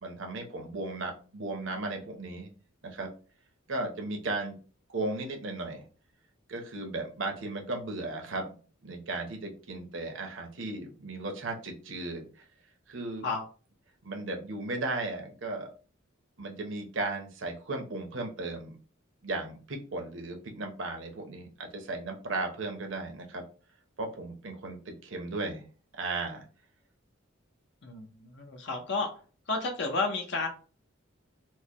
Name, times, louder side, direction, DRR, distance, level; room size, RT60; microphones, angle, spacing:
voice 1, 0.0-2.5 2.8-3.1 3.7-4.5 4.9-5.8 6.5-8.5 8.8-12.3 12.9-13.3 14.0-15.7 16.4-18.7 19.2-23.4 24.0-25.6 26.0-26.5, right 2 dB, 70° right, 3 dB, 0.9 m, -35 dB
voice 2, 27.8-29.1 29.5-30.5, left 3 dB, 60° left, 3 dB, 0.7 m, -31 dB
4.5 x 2.1 x 2.9 m, 0.37 s
head